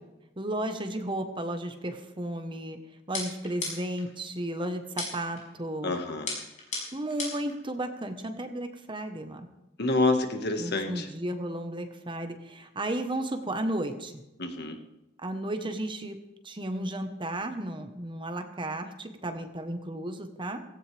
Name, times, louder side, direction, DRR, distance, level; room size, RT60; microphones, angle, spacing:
voice 1, 0.4-2.8 3.1-5.9 6.9-9.5 10.6-14.1 15.2-16.2 16.4-20.6, right 1 dB, 25° right, 7 dB, 1.2 m, -34 dB
sound 1, 3.1-4.1 5.0-5.4 6.3-7.5, left 3 dB, 40° left, 6.0 m, -35 dB
voice 2, 5.8-6.4 9.8-11.1 14.4-14.8, left 2 dB, 55° left, 5 dB, 1.7 m, -27 dB
16.5 x 16.0 x 3.5 m, 0.96 s
head